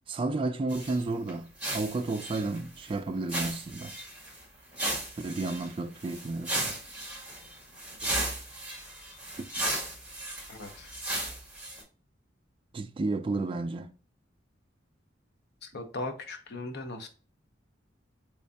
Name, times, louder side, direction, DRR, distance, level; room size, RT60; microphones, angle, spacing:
voice 1, 0.1-3.9 5.2-6.8 12.7-13.9, right 3 dB, 30° right, 0.3 m, -32 dB
sound 1, 0.7-1.0 1.3-1.4 1.6-2.9 3.3-4.4 4.7-11.8, right 1 dB, 5° right, 1.8 m, -35 dB
voice 2, 10.5-10.9 15.6-17.1, left 2 dB, 60° left, 0.7 m, -38 dB
3.4 x 3.1 x 2.6 m
head